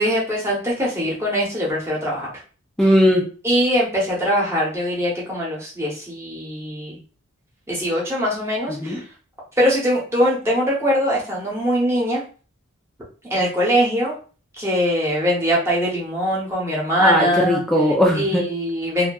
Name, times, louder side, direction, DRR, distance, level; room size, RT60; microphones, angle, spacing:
voice 1, 0.0-2.3 3.4-7.0 7.7-9.0 9.6-12.2 13.3-14.1 14.5-17.6 18.1-19.1, equal, 15° right, -5 dB, 0.9 m, -22 dB
voice 2, 2.8-3.3 8.8-9.0 17.0-18.4, equal, ahead, 0 dB, 0.3 m, -18 dB
2.6 x 2.2 x 2.3 m, 0.39 s
head